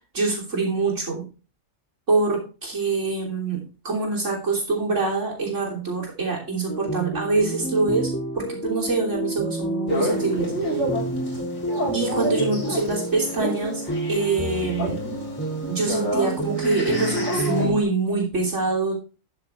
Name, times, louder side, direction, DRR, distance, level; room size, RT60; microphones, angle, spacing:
voice 1, 0.1-1.3 2.1-8.1 8.3-10.8 11.9-13.8 14.1-15.0 15.6-18.9, right 3 dB, 65° right, -3 dB, 3.6 m, -25 dB
sound 1, 6.7-17.8, right 2 dB, 10° left, 2.5 m, -29 dB
sound 2, 9.9-17.7, equal, 60° left, 3.7 m, -30 dB
12.5 x 6.9 x 3.5 m, 0.33 s
omnidirectional pair, 1.4 m